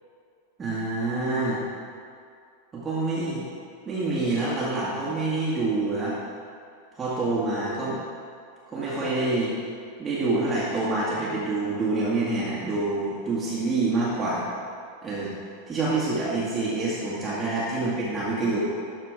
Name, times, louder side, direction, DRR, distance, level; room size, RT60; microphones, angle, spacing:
voice 1, 0.6-1.6 2.7-3.4 3.9-6.1 6.9-8.0 8.7-9.5 10.0-14.4 15.0-15.3 15.7-18.6, right 2 dB, 20° right, -8 dB, 2.0 m, -26 dB
13.0 x 4.4 x 4.9 m, 2.3 s
figure-of-eight pair, 90°, 0 cm